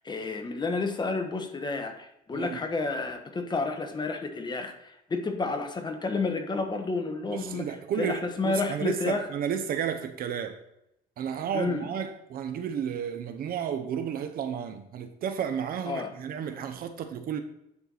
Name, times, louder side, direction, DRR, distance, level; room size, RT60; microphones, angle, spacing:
voice 1, 0.0-9.3 11.5-11.9 15.8-16.1, left 3 dB, 25° left, 1.2 m, -31 dB
voice 2, 7.3-10.6 11.2-17.4, right 8 dB, 60° right, 0.9 m, -32 dB
9.8 x 4.7 x 4.1 m
cardioid pair, 110°, 17 cm